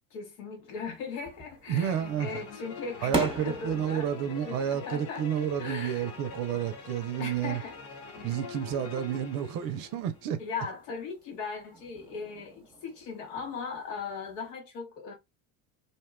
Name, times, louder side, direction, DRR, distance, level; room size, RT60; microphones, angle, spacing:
voice 1, 0.0-4.2 4.5-5.3 5.6-6.1 7.2-7.8 8.2-8.4 10.4-15.1, left 5 dB, 75° left, 1.2 m, -38 dB
sound 1, 0.7-14.5, right 1 dB, 15° right, 0.8 m, -42 dB
sound 2, 1.7-10.3, left 6 dB, 90° left, 0.7 m, -44 dB
voice 2, 1.7-2.4 3.0-7.6 8.2-10.4, right 9 dB, 60° right, 0.6 m, -30 dB
2.6 x 2.2 x 2.2 m
supercardioid pair, 80°, 40 cm